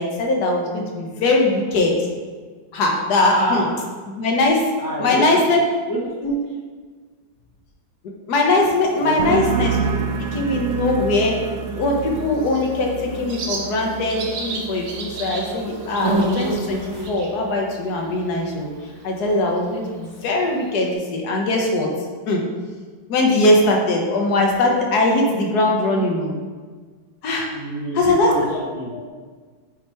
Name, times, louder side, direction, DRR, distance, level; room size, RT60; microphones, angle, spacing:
voice 1, 0.0-1.9 2.7-3.6 4.1-4.6 5.0-5.6 6.2-6.4 8.3-10.0 10.3-11.4 11.7-16.8 17.1-18.7 19.0-21.9 22.3-22.4 23.1-26.4 27.2-27.5 28.0-28.3 28.9-29.1, left 2 dB, 60° left, 0 dB, 1.4 m, -20 dB
voice 2, 3.3-3.6 4.8-5.4 5.9-6.0 9.0-9.4 27.5-28.9, right 1 dB, 15° left, -7 dB, 0.8 m, -26 dB
sound 1, 8.6-17.1, right 1 dB, 55° right, 1.0 m, -31 dB
sound 2, 9.2-16.6 16.9-17.5, right 6 dB, 70° right, 1.3 m, -29 dB
Bird, 12.0-20.9, right 4 dB, 90° right, 1.7 m, -37 dB
8.0 x 2.9 x 4.4 m, 1.5 s
omnidirectional pair, 2.1 m